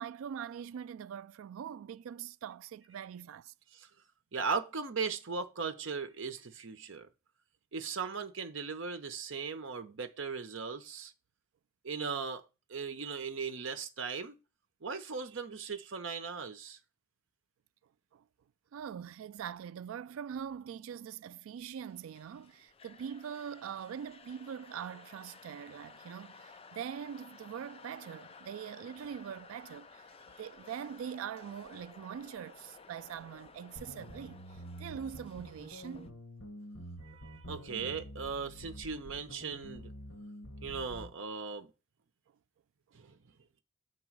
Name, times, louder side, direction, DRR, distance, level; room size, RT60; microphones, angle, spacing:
voice 1, 0.0-3.5 18.1-18.2 18.7-36.1, right 8 dB, 90° right, 0.3 m, -43 dB
voice 2, 4.3-7.1 7.7-11.1 11.8-14.4 14.8-16.8 37.0-39.9 40.6-41.7 42.9-43.2, right 5 dB, 70° right, 0.8 m, -38 dB
sound 1, 21.8-36.1, left 4 dB, 30° left, 0.4 m, -55 dB
sound 2, 33.8-41.1, equal, 80° left, 1.2 m, -48 dB
7.9 x 3.0 x 6.0 m
head